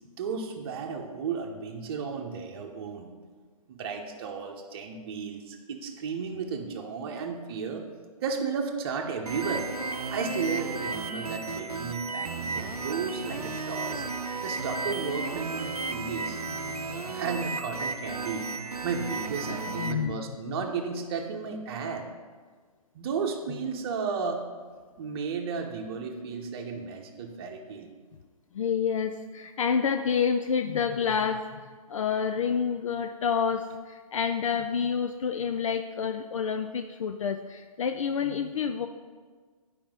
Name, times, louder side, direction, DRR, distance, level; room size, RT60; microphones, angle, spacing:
voice 1, 0.2-3.1 3.7-7.9 8.2-9.7 10.1-14.0 14.4-16.4 17.1-18.5 18.8-22.1 22.9-24.4 25.0-27.9, right 5 dB, 40° right, 2 dB, 0.9 m, -33 dB
sound 1, 9.3-19.9, right 3 dB, 85° right, 0.7 m, -34 dB
voice 2, 16.5-17.1 19.4-20.2 20.5-20.7 23.5-23.7 28.5-38.9, left 6 dB, 60° left, 7 dB, 0.4 m, -29 dB
10.0 x 5.0 x 3.7 m, 1.5 s
figure-of-eight pair, 125°, 19 cm